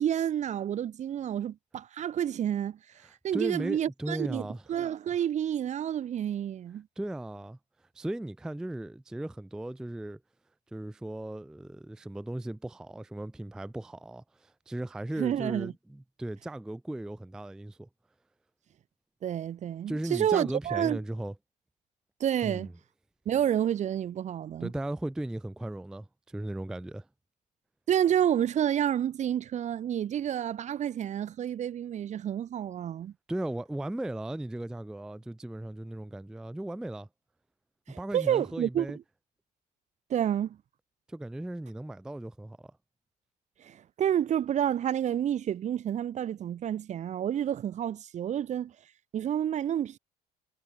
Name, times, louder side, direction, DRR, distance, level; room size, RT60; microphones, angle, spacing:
voice 1, 0.0-2.8 3.2-6.9 15.2-15.7 19.2-21.0 22.2-22.7 23.3-24.7 27.9-33.1 37.9-38.9 40.1-40.6 43.6-48.7 49.1-50.0, right 10 dB, 45° right, 0.6 m, -29 dB
voice 2, 3.0-4.7 7.0-7.6 7.9-10.2 10.7-17.9 19.9-21.3 22.4-22.7 24.6-27.1 33.3-37.1 38.0-39.0 41.1-42.7, right 1 dB, 5° right, 0.3 m, -37 dB
cardioid pair, 110°, 17 cm